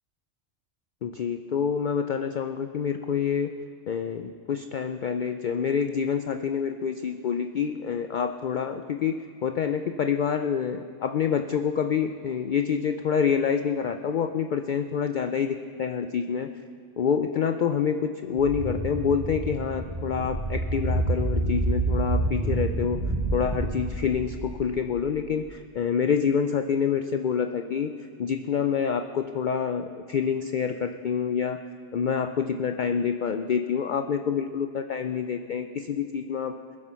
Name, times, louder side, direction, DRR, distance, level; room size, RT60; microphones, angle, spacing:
voice 1, 1.0-3.5 3.9-16.5 17.0-23.0 23.3-27.9 28.2-31.6 31.9-36.5, left 7 dB, 60° left, 7 dB, 0.5 m, -27 dB
sound 1, 18.4-25.5, right 2 dB, 50° right, 4.1 m, -28 dB
21.0 x 7.5 x 5.7 m, 2.2 s
omnidirectional pair, 1.3 m